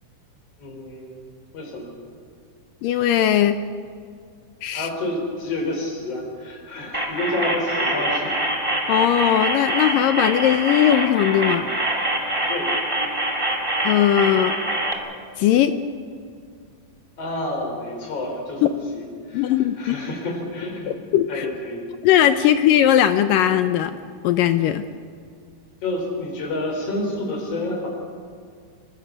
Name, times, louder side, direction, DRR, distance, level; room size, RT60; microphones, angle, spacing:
voice 1, 0.6-1.2 1.5-1.9 4.7-8.4 12.5-12.7 17.2-21.0 21.3-21.9 25.8-27.9, left 1 dB, 40° left, 1 dB, 5.5 m, -29 dB
voice 2, 2.8-3.6 4.6-4.9 8.9-11.7 13.8-14.5 15.4-15.7 19.3-20.0 21.1-21.5 22.0-24.0 24.2-24.8, left 11 dB, 75° left, 10 dB, 2.2 m, -18 dB
sound 1, 6.9-14.9, right 1 dB, 10° right, 1.7 m, -25 dB
27.5 x 22.0 x 6.4 m, 2.2 s
omnidirectional pair, 4.3 m